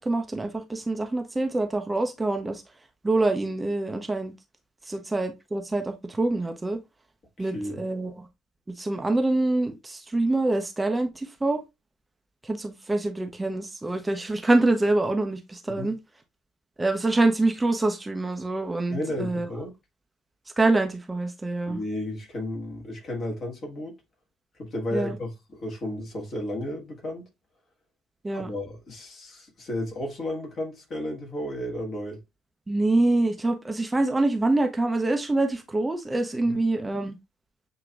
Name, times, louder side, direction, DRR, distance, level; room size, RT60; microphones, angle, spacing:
voice 1, 0.1-2.6 3.0-4.3 4.9-6.8 7.4-8.1 8.8-11.6 12.4-15.9 16.8-19.5 20.6-21.8 24.9-25.1 28.2-28.5 32.7-37.2, right 2 dB, 15° right, 0.6 m, -25 dB
voice 2, 7.4-7.8 15.7-15.9 18.9-19.7 21.7-23.9 24.6-27.2 28.3-32.2 36.4-36.6, left 1 dB, 40° left, 1.8 m, -33 dB
7.4 x 2.9 x 2.4 m
figure-of-eight pair, 50°, 0 cm